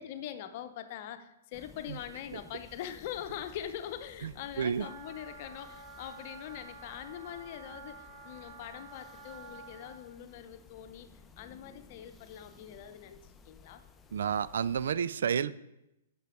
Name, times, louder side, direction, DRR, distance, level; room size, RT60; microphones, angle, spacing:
voice 1, 0.0-11.1 11.4-13.8, left 10 dB, 45° left, 9 dB, 0.8 m, -43 dB
sound 1, 1.5-14.9, left 4 dB, 15° left, 0.6 m, -57 dB
Wind instrument woodwind instrument, 4.8-10.0, right 3 dB, 40° right, 1.4 m, -50 dB
voice 2, 14.1-15.7, right 7 dB, 65° right, 17 dB, 0.3 m, -30 dB
9.1 x 6.8 x 4.7 m, 0.89 s
figure-of-eight pair, 115°, 0 cm